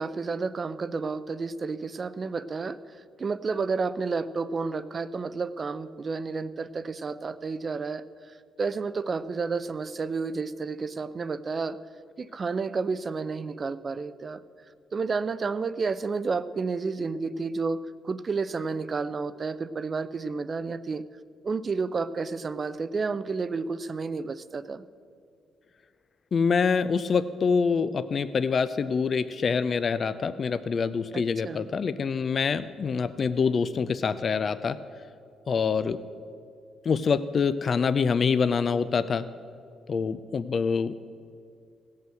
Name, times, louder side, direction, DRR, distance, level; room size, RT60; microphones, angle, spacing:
voice 1, 0.0-2.8 3.2-11.8 12.2-14.4 14.9-17.8 18.0-21.0 21.4-24.8 31.1-31.7, right 4 dB, 40° right, 14 dB, 0.5 m, -31 dB
voice 2, 26.3-34.8 35.5-36.0 36.9-39.3 39.9-40.9, left 5 dB, 45° left, 13 dB, 0.4 m, -25 dB
16.5 x 5.6 x 7.8 m, 2.3 s
cardioid pair, 90°, 0 cm